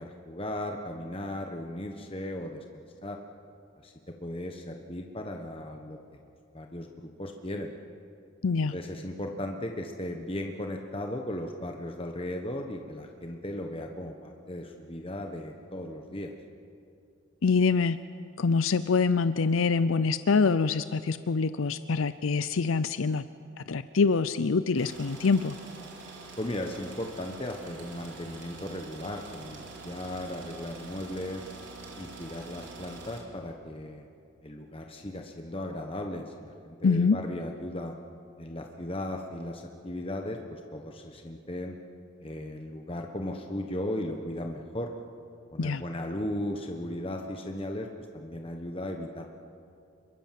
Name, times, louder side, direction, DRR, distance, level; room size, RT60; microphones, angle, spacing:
voice 1, 0.0-3.2 3.8-6.0 6.5-7.7 8.7-16.3 26.4-31.5 32.0-34.1 34.4-37.9 38.4-41.8 42.2-44.9 45.5-49.3, left 1 dB, 25° left, 3 dB, 1.2 m, -36 dB
voice 2, 8.4-8.7 17.4-18.0 18.4-23.2 23.7-25.6 36.8-37.2 45.6-45.8, left 4 dB, 80° left, 13 dB, 0.6 m, -25 dB
sound 1, 24.8-33.2, right 3 dB, 65° right, 4.2 m, -45 dB
26.5 x 23.0 x 7.6 m, 2.5 s
head